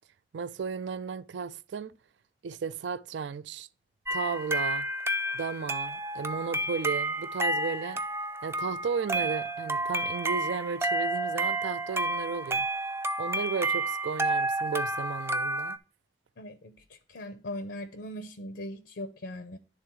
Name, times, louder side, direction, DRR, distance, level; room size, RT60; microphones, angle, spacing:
voice 1, 0.3-1.9 2.4-3.7 4.1-4.9 5.3-8.0 8.4-12.7 13.2-15.8, right 5 dB, 75° right, 0.4 m, -34 dB
sound 1, 4.1-15.8, right 1 dB, 15° right, 0.4 m, -30 dB
voice 2, 16.4-19.6, left 1 dB, 75° left, 0.7 m, -40 dB
10.5 x 3.7 x 4.5 m
head